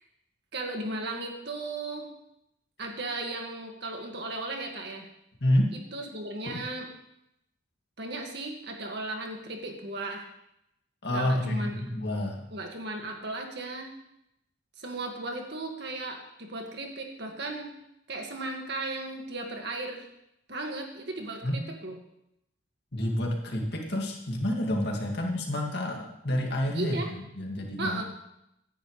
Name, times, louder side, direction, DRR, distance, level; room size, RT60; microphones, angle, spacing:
voice 1, 0.5-2.1 2.8-5.0 5.9-6.9 8.0-10.3 11.1-11.8 12.5-13.9 14.8-17.7 18.1-20.0 20.5-22.0 26.7-27.1 27.8-28.0, right 2 dB, 55° right, 2 dB, 2.0 m, -36 dB
voice 2, 5.4-5.7 11.0-12.4 21.4-21.6 22.9-28.0, left 1 dB, 50° left, 0 dB, 2.2 m, -29 dB
17.0 x 11.0 x 3.3 m, 0.81 s
head